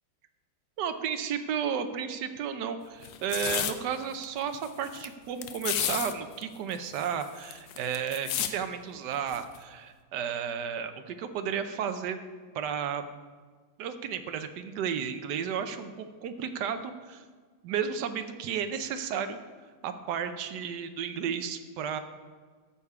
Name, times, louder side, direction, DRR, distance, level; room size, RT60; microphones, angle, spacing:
voice 1, 0.8-12.2 12.5-13.0 13.8-17.2 17.6-19.4 19.8-22.0, right 7 dB, 65° right, 8 dB, 1.1 m, -33 dB
sound 1, 3.0-3.7 4.2-4.3 4.5-5.1 5.4-6.1 6.4-6.5 6.7-8.5 9.3-9.6, left 11 dB, 70° left, 1.3 m, -32 dB
12.5 x 7.0 x 4.8 m, 1.5 s
omnidirectional pair, 2.4 m